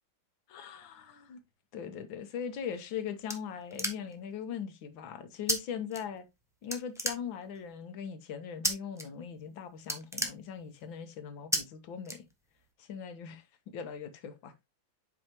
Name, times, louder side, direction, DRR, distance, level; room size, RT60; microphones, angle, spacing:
voice 1, 0.5-1.4 1.7-6.2 6.6-12.3 12.8-14.5, left 7 dB, 75° left, 1.7 m, -40 dB
sound 1, 2.6-4.3 5.5-5.6 5.9-6.4 6.7-7.7 8.6-9.0 9.4-9.5 9.8-10.9 11.5-11.6 12.0-12.7, equal, 5° right, 0.4 m, -33 dB
7.9 x 5.0 x 2.9 m
omnidirectional pair, 2.2 m